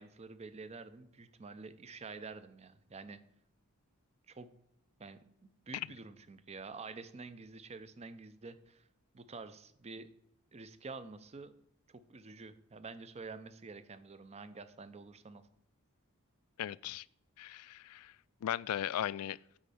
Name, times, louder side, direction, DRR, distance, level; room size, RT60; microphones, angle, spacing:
voice 1, 0.0-3.2 4.3-4.5 5.0-8.9 9.1-10.1 10.5-11.5 11.9-15.5, right 4 dB, 30° right, 0.6 m, -48 dB
voice 2, 16.6-17.0 17.4-18.1 18.4-19.4, left 11 dB, 90° left, 0.3 m, -37 dB
8.7 x 5.2 x 5.7 m
head